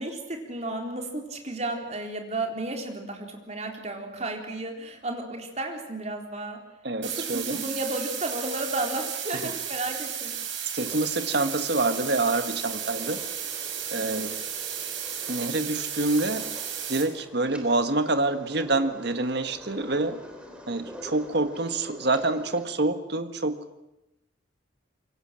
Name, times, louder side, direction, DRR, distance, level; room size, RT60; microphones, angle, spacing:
voice 1, 0.0-6.6 7.0-10.8, right 2 dB, 35° right, 3 dB, 3.9 m, -33 dB
voice 2, 6.8-7.6 9.3-9.5 10.7-13.2 13.9-14.4 15.3-16.5 16.9-20.2 20.7-23.6, right 2 dB, 55° right, 9 dB, 1.7 m, -27 dB
sound 1, 7.0-17.0, right 8 dB, 80° right, 5.1 m, -34 dB
sound 2, 10.8-22.7, left 1 dB, 5° right, 3.8 m, -45 dB
26.5 x 23.5 x 7.6 m, 0.93 s
head